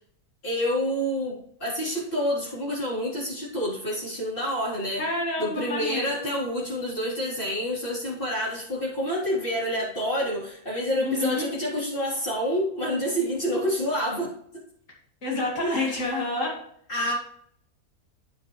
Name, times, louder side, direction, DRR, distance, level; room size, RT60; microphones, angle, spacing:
voice 1, 0.4-5.0 5.4-14.3 15.6-15.9 16.9-17.1, equal, 35° left, -6 dB, 3.9 m, -28 dB
voice 2, 5.0-6.1 11.0-11.5 15.2-16.6, left 2 dB, 55° left, -2 dB, 3.0 m, -28 dB
9.3 x 9.3 x 3.2 m, 0.67 s
omnidirectional pair, 1.6 m